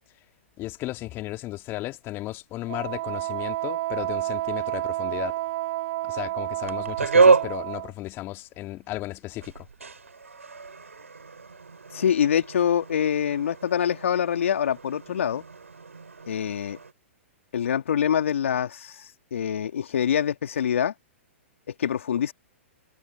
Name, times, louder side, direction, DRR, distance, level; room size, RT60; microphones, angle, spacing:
voice 1, 0.6-5.4 6.0-9.7, left 17 dB, 35° left, 3.2 m, -35 dB
Wind instrument woodwind instrument, 2.7-7.9, right 16 dB, 50° right, 1.6 m, -30 dB
sound 1, 6.6-8.8 9.2-16.9, right 4 dB, 90° right, 3.8 m, -27 dB
voice 2, 11.9-15.4 16.3-16.8 17.5-20.9 21.8-22.3, left 8 dB, 70° left, 2.3 m, -25 dB
hypercardioid pair, 115°, 7 cm